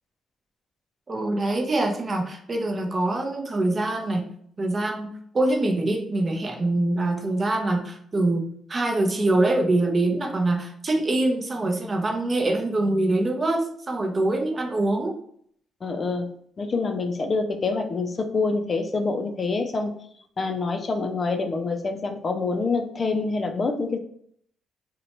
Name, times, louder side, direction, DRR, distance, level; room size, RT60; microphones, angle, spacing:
voice 1, 1.1-4.2 4.6-15.1, right 2 dB, 35° right, 2 dB, 0.6 m, -24 dB
voice 2, 15.8-16.3 16.6-20.0 20.4-24.0, left 3 dB, 40° left, 5 dB, 0.3 m, -26 dB
2.7 x 2.1 x 2.9 m, 0.64 s
cardioid pair, 90°, 0 cm